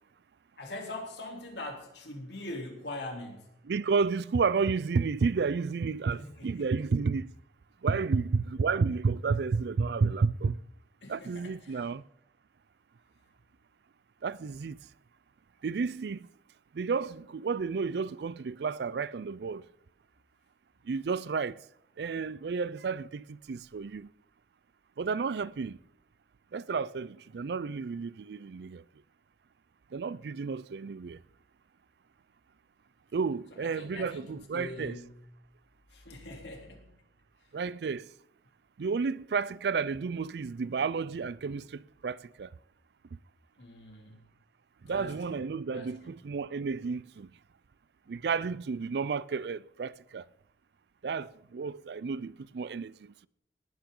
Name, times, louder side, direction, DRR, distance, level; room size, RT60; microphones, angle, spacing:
voice 1, 0.6-3.4 6.1-6.7 11.0-11.9 33.6-35.2 35.9-36.9 43.6-44.2 44.8-45.4 45.7-46.1, left 2 dB, 90° left, 3.0 m, -43 dB
voice 2, 3.6-7.3 7.8-10.6 11.1-12.0 14.2-14.8 15.6-16.2 16.7-19.6 20.9-21.6 22.0-24.1 25.0-25.8 26.5-28.8 29.9-31.2 33.1-35.0 37.5-38.0 38.8-41.7 42.0-42.5 44.9-47.3 48.1-50.2 51.0-52.9, right 5 dB, 75° right, 0.4 m, -31 dB
18.5 x 11.5 x 3.8 m
head